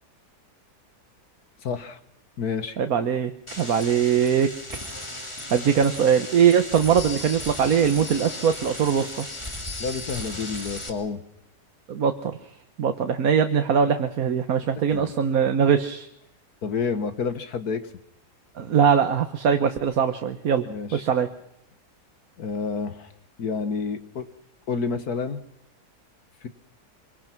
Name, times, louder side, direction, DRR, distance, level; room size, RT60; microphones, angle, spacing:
voice 1, 1.6-2.0 2.4-2.8 9.8-11.2 14.9-15.1 16.6-17.9 20.7-21.0 22.4-23.1 23.4-24.3 24.7-25.4 26.4-26.5, left 5 dB, 65° left, 11 dB, 1.8 m, -29 dB
voice 2, 2.8-3.3 3.6-4.5 5.5-9.3 11.9-12.4 12.8-16.1 18.6-20.6 20.9-21.3, right 7 dB, 60° right, 8 dB, 1.5 m, -21 dB
sound 1, 3.5-10.9, left 1 dB, 15° left, 2.8 m, -36 dB
25.5 x 23.5 x 6.0 m, 0.80 s
omnidirectional pair, 1.8 m